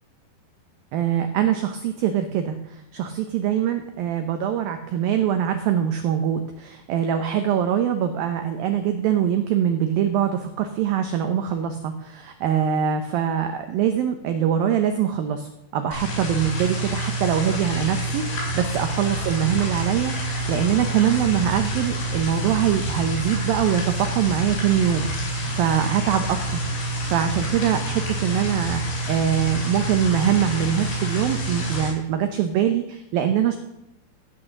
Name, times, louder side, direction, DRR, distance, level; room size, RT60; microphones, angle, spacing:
voice 1, 0.9-26.6 27.1-33.6, right 9 dB, 85° right, 7 dB, 2.1 m, -23 dB
sound 1, 15.9-31.9, right 1 dB, 70° left, 6.6 m, -28 dB
13.5 x 8.6 x 6.5 m, 0.85 s
omnidirectional pair, 5.2 m